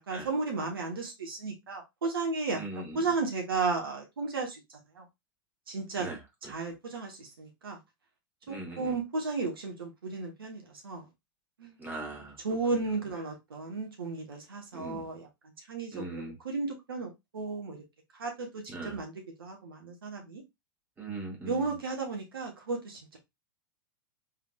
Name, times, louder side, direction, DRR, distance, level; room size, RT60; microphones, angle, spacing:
voice 1, 0.0-4.6 5.0-5.1 5.7-6.1 6.4-7.8 8.5-11.1 11.6-11.7 12.4-15.3 15.7-17.8 18.2-19.1 19.4-20.4 21.4-23.2, right 4 dB, 75° right, 1.3 m, -34 dB
voice 2, 2.5-3.0 6.0-6.2 8.5-8.9 11.8-12.4 14.7-15.0 15.9-16.4 18.7-19.0 21.0-21.7, right 2 dB, 15° right, 1.4 m, -40 dB
3.6 x 3.5 x 2.3 m
figure-of-eight pair, 95°, 12 cm